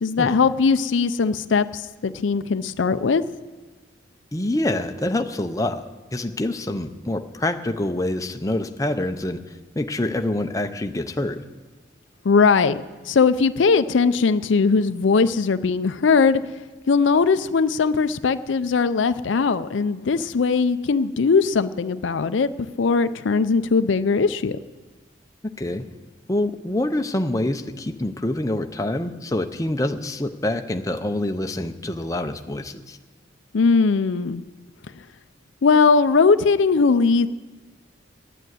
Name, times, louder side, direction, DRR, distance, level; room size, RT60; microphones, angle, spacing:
voice 1, 0.0-3.2 12.2-12.8 13.1-16.4 16.9-24.6 33.5-34.4 35.6-37.3, left 4 dB, 75° left, 12 dB, 0.5 m, -19 dB
voice 2, 4.3-5.8 6.1-9.4 9.8-11.4 25.6-25.8 26.3-33.0, left 1 dB, 15° left, 5 dB, 0.6 m, -26 dB
11.0 x 9.1 x 9.3 m, 1.3 s
head